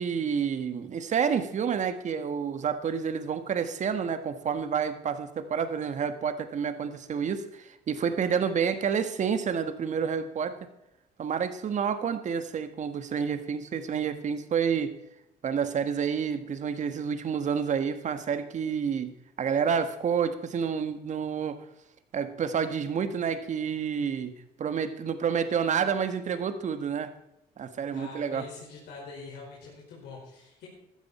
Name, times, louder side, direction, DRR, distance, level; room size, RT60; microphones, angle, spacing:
voice 1, 0.0-10.7 11.2-15.0 15.4-21.6 22.1-27.1 27.6-28.5, right 7 dB, 45° right, 10 dB, 1.4 m, -29 dB
voice 2, 27.9-30.7, left 4 dB, 75° left, -4 dB, 5.0 m, -44 dB
15.5 x 12.5 x 4.3 m, 0.85 s
cardioid pair, 110°, 17 cm